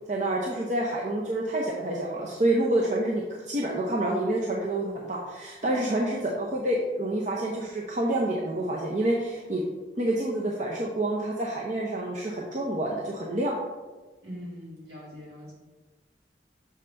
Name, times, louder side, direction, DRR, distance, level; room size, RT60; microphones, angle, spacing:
voice 1, 0.1-9.6 10.0-13.5, right 1 dB, 40° right, -2 dB, 0.6 m, -28 dB
voice 2, 14.2-15.5, equal, 70° right, -4 dB, 2.1 m, -42 dB
6.5 x 5.2 x 3.3 m, 1.3 s
head